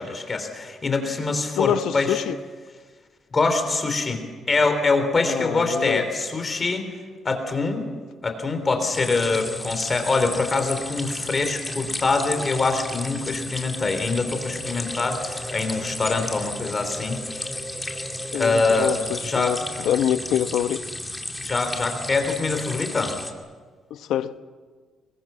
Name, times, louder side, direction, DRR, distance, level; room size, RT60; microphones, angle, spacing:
voice 1, 0.0-2.2 3.3-4.2 4.5-6.8 7.2-7.9 8.2-17.5 18.3-19.0 19.2-19.6 21.4-23.1, left 3 dB, 25° left, 3.6 m, -24 dB
voice 2, 1.5-2.4 5.3-6.0 18.3-20.8 23.9-24.4, left 10 dB, 80° left, 1.0 m, -25 dB
sound 1, 8.9-23.3, left 1 dB, 10° left, 2.4 m, -34 dB
sound 2, 13.7-19.2, equal, 5° right, 4.5 m, -39 dB
25.5 x 22.5 x 7.6 m
cardioid pair, 135°, 0 cm